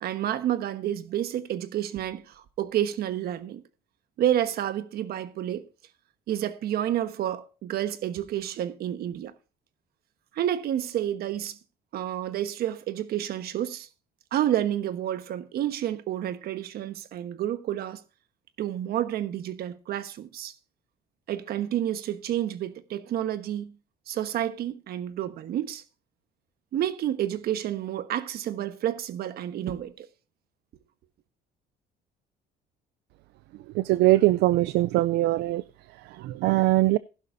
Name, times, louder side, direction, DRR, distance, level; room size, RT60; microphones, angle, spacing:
voice 1, 0.0-3.6 4.2-5.7 6.3-9.3 10.3-11.6 11.9-13.9 14.3-18.0 18.6-20.5 21.3-23.7 24.1-25.8 26.7-30.1, right 11 dB, 65° right, 1.2 m, -29 dB
voice 2, 33.7-35.6 36.0-37.0, right 17 dB, 80° right, 0.4 m, -22 dB
15.5 x 11.5 x 2.6 m
cardioid pair, 110°, 17 cm